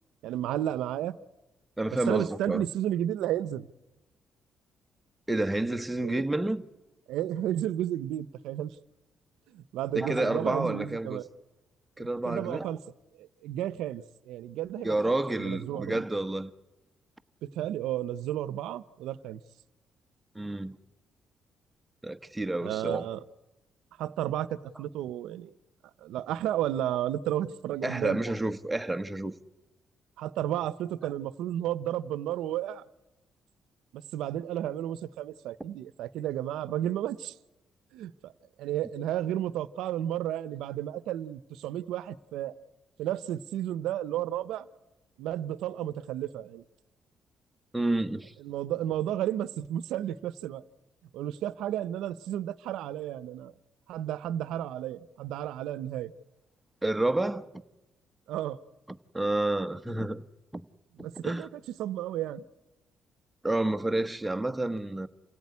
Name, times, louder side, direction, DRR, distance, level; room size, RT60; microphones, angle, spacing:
voice 1, 0.2-1.2 2.1-3.7 6.0-6.2 7.1-8.7 9.5-11.3 12.0-12.8 13.2-16.0 17.4-19.4 22.6-23.2 24.0-25.5 26.0-28.2 30.2-32.8 33.9-37.3 37.9-38.3 38.6-42.5 43.0-44.7 45.2-46.6 48.4-50.6 51.1-53.5 53.9-56.1 58.3-58.6 61.0-62.4, right 12 dB, 90° right, 0.8 m, -32 dB
voice 2, 1.8-2.7 5.3-6.6 9.9-11.2 12.0-12.7 14.8-16.5 20.3-20.8 22.0-23.1 27.8-29.4 47.7-48.3 56.8-57.5 58.9-60.2 60.5-60.7 61.0-61.5 63.4-65.1, right 2 dB, 10° right, 1.2 m, -29 dB
28.0 x 17.0 x 9.6 m
cardioid pair, 90°, 0 cm